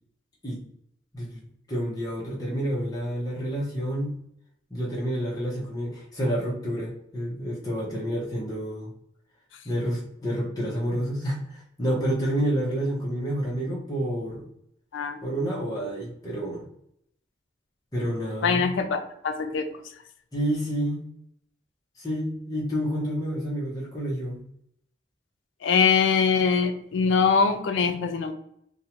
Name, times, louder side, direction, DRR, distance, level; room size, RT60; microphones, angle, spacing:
voice 1, 1.7-4.2 4.7-8.9 9.6-14.4 15.2-16.6 17.9-18.7 20.3-21.1 22.0-24.4, equal, 20° left, -6 dB, 0.7 m, -29 dB
voice 2, 18.4-19.7 25.6-28.3, left 5 dB, 80° left, 7 dB, 0.4 m, -23 dB
2.5 x 2.1 x 2.8 m, 0.74 s
head